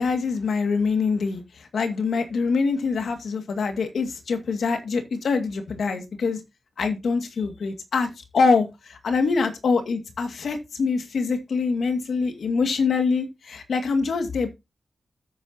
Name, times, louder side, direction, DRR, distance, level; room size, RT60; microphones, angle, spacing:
voice 1, 0.0-6.4 6.8-14.5, left 4 dB, 80° left, 2.1 m, -24 dB
10.0 x 9.0 x 2.9 m
cardioid pair, 80°, 0 cm